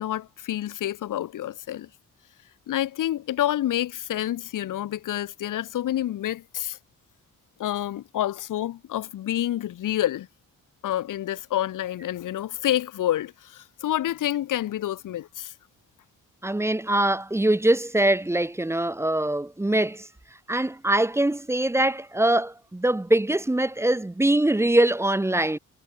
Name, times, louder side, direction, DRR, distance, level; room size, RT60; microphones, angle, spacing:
voice 1, 0.0-1.9 2.7-6.8 7.6-10.3 10.8-15.5, left 12 dB, 80° left, 1.1 m, -28 dB
voice 2, 16.4-20.1 20.5-25.6, right 1 dB, 10° right, 1.1 m, -23 dB
wide cardioid pair, 170°, 31 cm